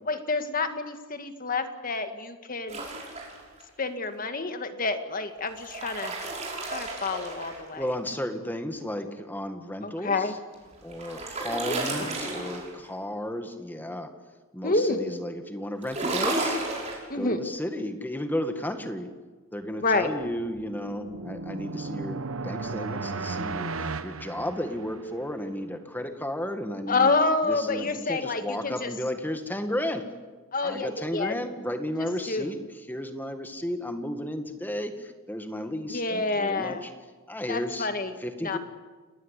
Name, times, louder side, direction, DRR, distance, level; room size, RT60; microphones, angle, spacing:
voice 1, 0.1-2.8 3.8-6.1 6.7-7.8 9.8-10.3 11.5-11.8 14.6-15.2 17.1-17.4 19.8-20.1 26.9-28.9 30.5-31.4 32.3-32.5 35.9-36.8 37.5-38.1 38.4-38.6, left 3 dB, 40° left, 8 dB, 2.0 m, -28 dB
sound 1, 2.7-3.6 5.4-7.9 10.5-12.9 15.8-17.0, right 2 dB, 30° right, 6.2 m, -32 dB
voice 2, 7.8-10.4 10.8-14.1 14.5-16.6 17.1-19.1 19.5-27.1 27.4-30.1 30.6-36.9 37.3-37.9 38.2-38.6, left 1 dB, 10° left, 7 dB, 1.8 m, -33 dB
sound 2, 20.2-25.2, right 3 dB, 65° right, 1.0 m, -35 dB
29.5 x 20.0 x 8.3 m, 1.3 s
head